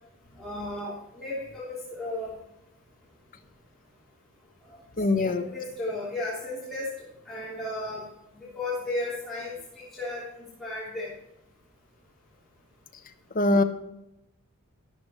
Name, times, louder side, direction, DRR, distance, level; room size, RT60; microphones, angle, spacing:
voice 1, 0.4-2.3 5.2-6.9 7.3-8.0 8.5-11.1, left 2 dB, ahead, -10 dB, 3.4 m, -34 dB
voice 2, 5.0-5.5 13.3-13.6, left 2 dB, 40° left, 6 dB, 1.1 m, -22 dB
13.0 x 12.5 x 3.2 m, 0.89 s
head